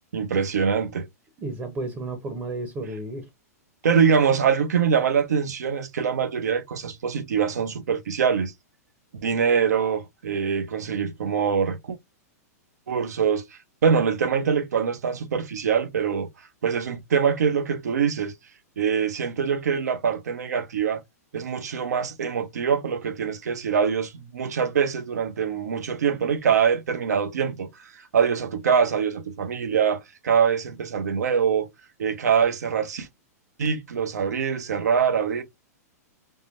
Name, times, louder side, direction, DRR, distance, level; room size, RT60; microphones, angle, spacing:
voice 1, 0.1-1.1 3.8-8.5 9.1-12.0 12.9-13.4 13.8-16.3 16.6-18.3 18.8-21.0 21.3-31.7 32.0-33.1 33.6-35.4, right 6 dB, 80° right, 0.7 m, -24 dB
voice 2, 1.4-3.3, right 2 dB, 25° right, 0.7 m, -32 dB
3.6 x 2.1 x 2.5 m
hypercardioid pair, 120°, 9 cm